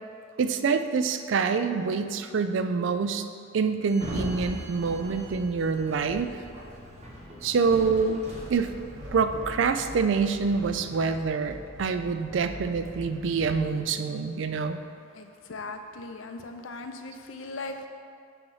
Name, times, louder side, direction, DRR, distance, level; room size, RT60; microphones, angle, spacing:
voice 1, 0.4-3.2 3.5-6.3 7.4-8.2 8.5-8.7 9.1-14.8, right 5 dB, 65° right, 9 dB, 0.4 m, -26 dB
Sliding door, 3.9-9.1, equal, 35° right, 1.0 m, -40 dB
sound 1, 7.8-13.6, equal, 85° right, 1.1 m, -43 dB
voice 2, 15.1-17.9, left 3 dB, 80° left, 6 dB, 0.5 m, -39 dB
7.9 x 3.1 x 5.5 m, 2.4 s
head